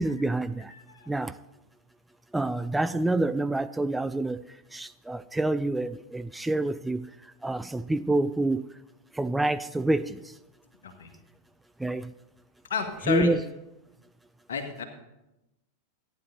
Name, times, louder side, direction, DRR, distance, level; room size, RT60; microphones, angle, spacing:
voice 1, 0.0-0.7 1.1-1.3 2.3-4.4 4.7-7.1 7.4-8.6 9.2-10.2 11.8-12.1 13.1-13.4, right 2 dB, 5° right, 0.3 m, -27 dB
voice 2, 0.7-1.1 10.8-11.1 12.7-13.3 14.5-14.8, left 6 dB, 60° left, 1.8 m, -31 dB
14.5 x 10.0 x 4.1 m
figure-of-eight pair, 90°, 0 cm